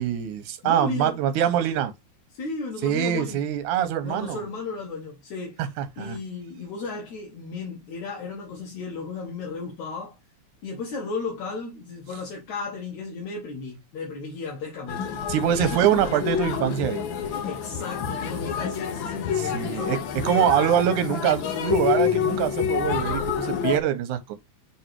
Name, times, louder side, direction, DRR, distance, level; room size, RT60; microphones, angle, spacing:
voice 1, 0.0-1.9 2.8-4.4 5.8-6.2 15.3-17.1 19.4-20.0 20.2-24.3, right 10 dB, 80° right, 2.4 m, -24 dB
voice 2, 0.6-1.2 2.3-3.4 4.0-5.6 6.0-10.2 10.6-15.1 15.5-16.2 17.5-20.8, left 4 dB, 70° left, 2.8 m, -34 dB
sound 1, 14.9-23.8, left 7 dB, 85° left, 1.0 m, -28 dB
5.9 x 4.0 x 4.5 m
omnidirectional pair, 3.5 m